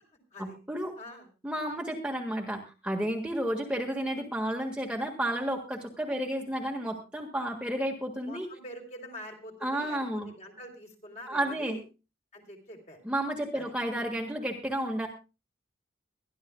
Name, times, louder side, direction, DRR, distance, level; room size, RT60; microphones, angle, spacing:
voice 1, 0.4-0.9 1.4-8.5 9.6-10.3 11.3-11.8 13.0-15.1, right 1 dB, 5° right, 0 dB, 1.7 m, -32 dB
voice 2, 1.0-1.3 8.3-11.8 12.3-13.0 13.5-13.7, equal, 35° left, 2 dB, 3.5 m, -45 dB
23.0 x 12.0 x 2.3 m, 0.29 s
head